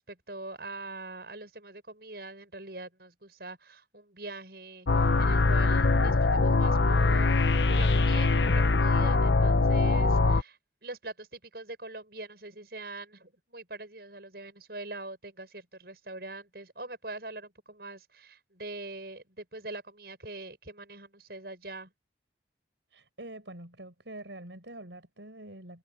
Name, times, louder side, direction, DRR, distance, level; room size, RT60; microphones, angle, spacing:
voice 1, 0.0-7.3 7.7-21.9, right 2 dB, 60° right, 7.6 m, -43 dB
sound 1, 4.9-10.4, left 3 dB, 80° left, 0.9 m, -23 dB
voice 2, 22.9-25.8, right 1 dB, 85° right, 6.9 m, -45 dB
head